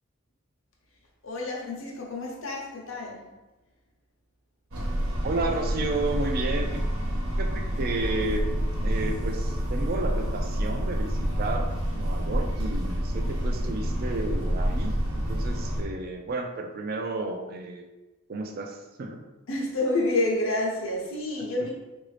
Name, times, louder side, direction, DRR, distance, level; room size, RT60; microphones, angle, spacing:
voice 1, 1.2-3.3 19.5-21.7, left 2 dB, 65° left, -2 dB, 0.7 m, -29 dB
sound 1, 4.7-15.8, equal, 90° right, 0.8 m, -28 dB
voice 2, 5.2-6.7 7.4-8.5 8.8-17.8 18.3-19.2, right 2 dB, 45° right, 4 dB, 0.4 m, -32 dB
3.9 x 2.6 x 3.2 m, 1.1 s
head